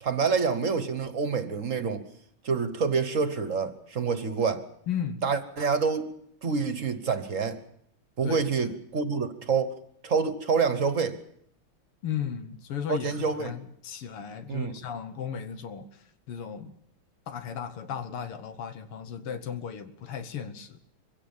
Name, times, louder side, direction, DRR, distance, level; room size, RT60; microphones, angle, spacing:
voice 1, 0.0-2.0 2.4-4.6 5.2-6.1 6.4-7.6 8.2-9.7 10.0-11.2 12.9-13.5 14.5-14.7, right 5 dB, 45° right, 11 dB, 1.3 m, -27 dB
voice 2, 4.9-5.2 8.2-8.7 12.0-16.8 17.3-20.8, left 8 dB, 90° left, 11 dB, 2.2 m, -35 dB
23.5 x 16.0 x 7.3 m, 0.72 s
omnidirectional pair, 2.4 m